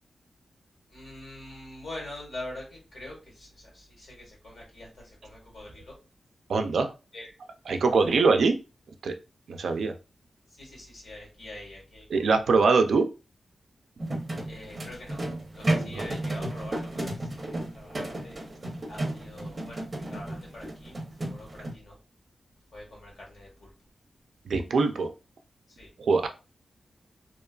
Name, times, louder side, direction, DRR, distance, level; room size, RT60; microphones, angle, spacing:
voice 1, 0.9-6.0 7.1-7.3 7.7-7.8 10.6-12.5 14.4-15.2 15.5-18.4 18.9-21.9 22.7-23.7 25.7-25.9 26.2-26.3, left 1 dB, 60° left, -2 dB, 1.4 m, -44 dB
voice 2, 6.5-6.9 7.7-8.6 9.0-9.1 9.5-9.9 12.1-13.1 15.9-16.0 24.5-25.1 26.0-26.3, right 4 dB, 75° right, 6 dB, 0.3 m, -23 dB
sound 1, 14.0-21.7, right 1 dB, 30° right, 0.6 m, -33 dB
2.8 x 2.2 x 2.2 m, 0.31 s
wide cardioid pair, 165°, 0 cm